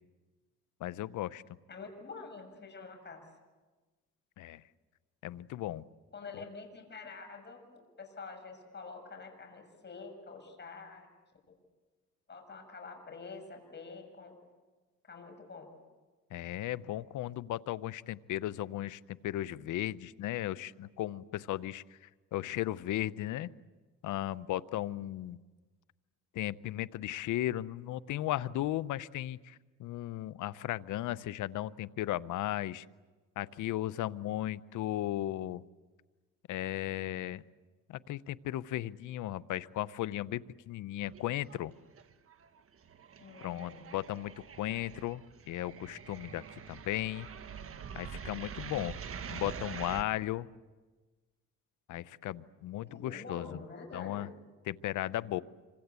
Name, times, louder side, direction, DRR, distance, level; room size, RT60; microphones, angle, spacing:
voice 1, 0.8-1.4 4.4-4.6 5.2-5.8 6.3-6.4 16.3-21.8 22.3-23.5 24.0-25.4 26.3-32.8 33.4-35.6 36.5-37.4 37.9-41.7 43.4-44.3 44.6-45.2 45.5-47.3 47.9-49.0 49.3-50.5 51.9-53.6 53.9-54.3 54.7-55.4, left 14 dB, 80° left, 16 dB, 0.8 m, -36 dB
voice 2, 1.7-3.3 6.1-11.1 12.3-14.4 15.0-15.7 43.2-43.8 52.9-54.2, left 4 dB, 35° left, 3 dB, 6.8 m, -47 dB
sound 1, 41.0-41.7 42.0-50.0, right 7 dB, 50° right, 1.5 m, -45 dB
27.0 x 25.5 x 8.3 m, 1.3 s
cardioid pair, 90°, 30 cm